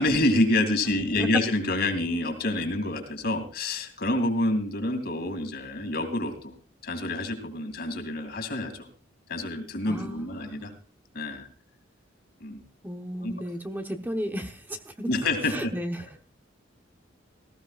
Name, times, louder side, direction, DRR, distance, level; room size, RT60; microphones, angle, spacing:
voice 1, 0.0-6.5 6.8-8.9 9.3-10.7 11.1-11.5 12.4-12.6 13.2-13.3 15.1-15.7, left 2 dB, 55° left, 6 dB, 2.5 m, -27 dB
voice 2, 9.9-10.7 12.8-15.1 15.4-16.2, equal, 10° right, 4 dB, 1.0 m, -34 dB
18.5 x 15.0 x 2.4 m, 0.39 s
head